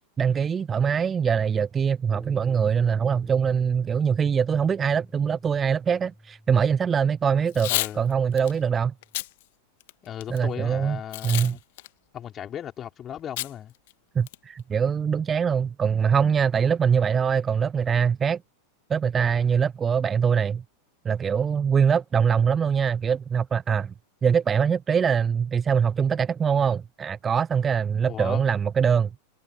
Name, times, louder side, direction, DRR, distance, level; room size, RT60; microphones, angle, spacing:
voice 1, 0.2-8.9 10.3-11.6 14.2-18.4 18.9-20.6 21.0-23.9 24.2-29.1, right 7 dB, 20° right, 0.4 m, -23 dB
sound 1, 2.1-9.2, equal, ahead, 2.9 m, -48 dB
Packing tape duct tape / Tearing, 7.5-7.9 8.4-8.5 9.0-9.3 9.8-10.4 11.1-11.5 11.8-11.9 13.4-13.5 13.9-14.0 14.3-14.6, left 19 dB, 50° left, 1.4 m, -29 dB
voice 2, 7.7-8.0 10.0-11.6 12.1-13.7 28.0-28.4, left 10 dB, 25° left, 4.6 m, -36 dB
figure-of-eight pair, 90°, 0 cm